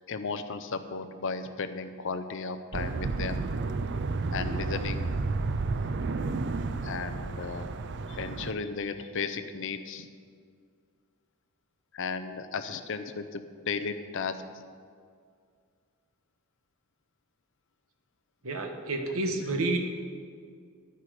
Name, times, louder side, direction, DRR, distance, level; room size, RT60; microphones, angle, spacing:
voice 1, 0.1-3.5 4.3-5.1 6.8-7.7 8.1-10.1 11.9-14.6 19.3-19.6, left 4 dB, 60° left, 9 dB, 0.6 m, -35 dB
sound 1, 2.7-8.5, right 3 dB, 50° right, 0.5 m, -31 dB
voice 2, 18.4-19.8, right 2 dB, 70° right, 4 dB, 1.3 m, -29 dB
10.0 x 10.0 x 4.9 m, 2.1 s
head